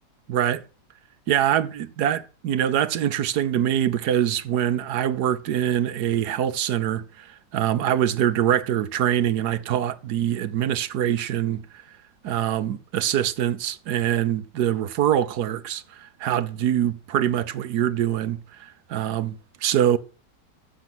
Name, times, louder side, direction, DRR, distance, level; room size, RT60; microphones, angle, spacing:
voice 1, 0.3-0.6 1.3-11.8 12.2-20.0, right 10 dB, 65° right, 1.4 m, -24 dB
15.0 x 7.0 x 6.1 m
omnidirectional pair, 2.0 m